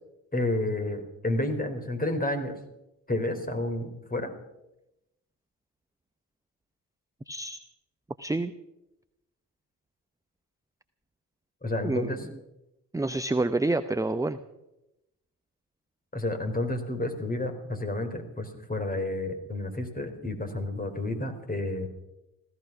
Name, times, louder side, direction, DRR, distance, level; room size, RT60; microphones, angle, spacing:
voice 1, 0.3-2.6 3.1-4.3 11.6-12.2 16.1-21.9, left 1 dB, 20° left, 5 dB, 3.7 m, -30 dB
voice 2, 7.3-7.6 8.2-8.5 11.8-12.2 12.9-14.4, right 2 dB, 5° right, 11 dB, 0.7 m, -28 dB
15.5 x 14.0 x 6.0 m, 0.91 s
hypercardioid pair, 50°, 45 cm